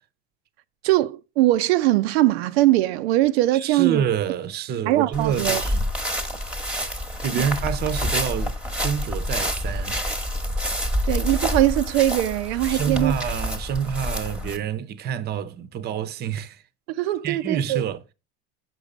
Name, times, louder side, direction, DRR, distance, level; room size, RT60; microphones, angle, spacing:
voice 1, 0.8-4.1 4.9-5.6 7.3-7.4 11.0-13.1 16.9-17.8, right 16 dB, 80° right, 0.6 m, -21 dB
voice 2, 3.5-5.9 7.2-10.0 12.7-16.6 17.2-18.1, right 8 dB, 30° right, 0.7 m, -27 dB
sound 1, 5.1-14.6, equal, 5° right, 1.0 m, -27 dB
6.3 x 5.4 x 4.9 m
supercardioid pair, 125°, 32 cm